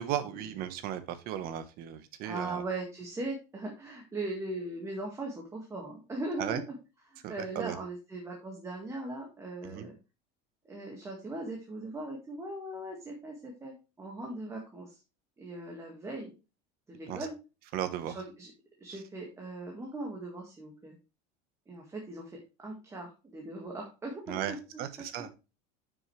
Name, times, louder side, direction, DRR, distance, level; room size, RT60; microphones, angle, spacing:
voice 1, 0.0-2.6 6.4-6.6 7.2-7.8 9.6-9.9 17.1-17.2 17.7-18.2 24.3-25.3, right 11 dB, 50° right, 11 dB, 1.2 m, -36 dB
voice 2, 2.2-6.6 7.1-10.0 10.7-15.0 15.4-16.3 16.9-17.3 18.0-18.5 18.8-20.9 21.7-25.1, right 2 dB, 15° right, 0 dB, 1.9 m, -39 dB
9.4 x 6.3 x 3.3 m, 0.29 s
cardioid pair, 150°, 20 cm